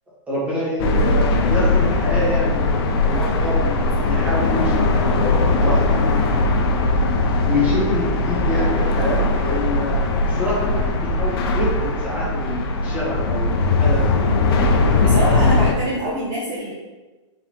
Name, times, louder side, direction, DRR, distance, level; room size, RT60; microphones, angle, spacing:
voice 1, 0.3-6.2 7.4-14.0 15.2-15.4, left 1 dB, 10° right, -8 dB, 1.4 m, -27 dB
sound 1, 0.8-15.7, left 2 dB, 50° left, 0.6 m, -19 dB
voice 2, 15.0-16.7, equal, 30° right, -6 dB, 0.9 m, -25 dB
3.9 x 3.9 x 3.0 m, 1.2 s
hypercardioid pair, 145°, 16 cm